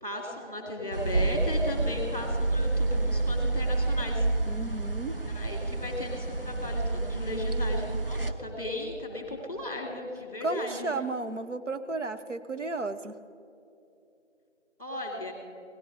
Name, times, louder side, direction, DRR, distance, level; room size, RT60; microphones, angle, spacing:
voice 1, 0.0-4.3 5.2-10.9 14.8-15.3, left 1 dB, 30° left, 1 dB, 2.4 m, -36 dB
sound 1, 0.9-8.3, right 2 dB, 50° right, 0.6 m, -29 dB
voice 2, 4.5-5.2 10.4-13.1, right 3 dB, 75° right, 8 dB, 0.9 m, -33 dB
17.5 x 13.5 x 4.7 m, 2.7 s
figure-of-eight pair, 175°, 37 cm